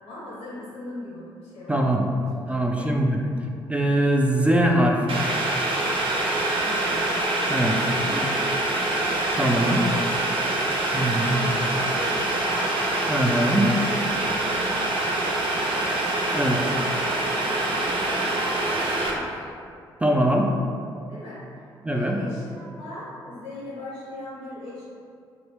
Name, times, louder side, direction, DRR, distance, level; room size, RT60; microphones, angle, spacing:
voice 1, 0.0-1.9 2.2-2.9 3.2-3.3 6.6-7.2 7.8-8.5 9.3-10.0 10.7-12.8 14.2-14.9 15.3-15.9 16.3-19.4 21.1-24.8, left 1 dB, 90° left, -8 dB, 1.1 m, -39 dB
voice 2, 1.7-2.0 2.5-3.2 3.7-5.2 7.5-7.9 8.1-8.3 9.4-9.8 10.9-11.5 13.1-13.7 16.3-16.6 20.0-20.5 21.8-22.2, right 1 dB, 10° right, 0 dB, 0.4 m, -22 dB
Boiling, 5.1-19.1, right 2 dB, 60° right, 0.6 m, -25 dB
2.9 x 2.5 x 3.3 m, 2.3 s
supercardioid pair, 50°, 10 cm